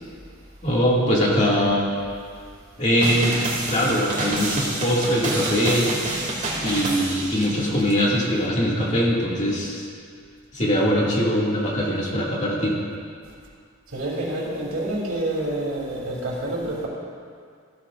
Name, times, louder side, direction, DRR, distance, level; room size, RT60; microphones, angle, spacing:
voice 1, 0.6-1.9 2.8-3.4 3.7-5.9 6.6-9.9 10.5-12.8, equal, 35° left, -5 dB, 2.2 m, -22 dB
sound 1, 3.0-7.9, right 2 dB, 35° right, 2.3 m, -28 dB
voice 2, 13.9-16.9, right 1 dB, 80° right, -4 dB, 3.1 m, -28 dB
15.0 x 13.0 x 2.5 m, 2.1 s
head